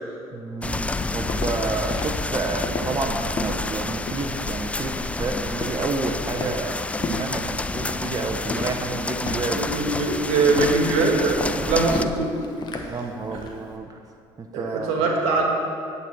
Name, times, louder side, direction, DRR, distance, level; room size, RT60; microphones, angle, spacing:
voice 1, 0.3-9.7 11.5-11.8 12.9-14.0 14.4-15.1, right 3 dB, 35° right, 4 dB, 0.7 m, -30 dB
sound 1, 0.6-12.0, left 2 dB, 10° left, 0.3 m, -29 dB
Walk footsteps, 0.8-13.6, left 3 dB, 40° left, 1.0 m, -34 dB
voice 2, 9.5-11.4 11.7-12.4 12.7-12.9 14.5-15.4, right 3 dB, 80° right, 1 dB, 1.3 m, -22 dB
8.9 x 4.1 x 7.3 m, 2.4 s
supercardioid pair, 70°, 11 cm